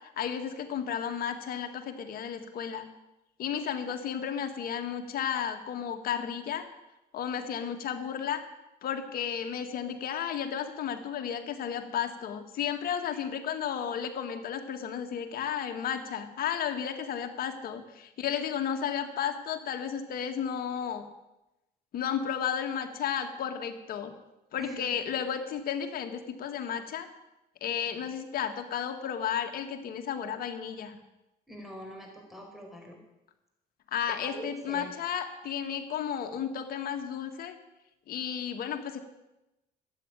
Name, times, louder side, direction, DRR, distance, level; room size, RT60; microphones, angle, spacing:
voice 1, 0.2-2.9 3.4-6.6 7.1-8.4 8.8-21.0 21.9-24.1 24.5-27.1 27.6-31.0 33.9-37.5 38.1-39.0, left 8 dB, 60° left, 5 dB, 1.9 m, -33 dB
voice 2, 31.5-33.0 34.2-34.9, equal, ahead, 1 dB, 4.8 m, -43 dB
13.5 x 8.7 x 9.9 m, 0.96 s
cardioid pair, 110°, 17 cm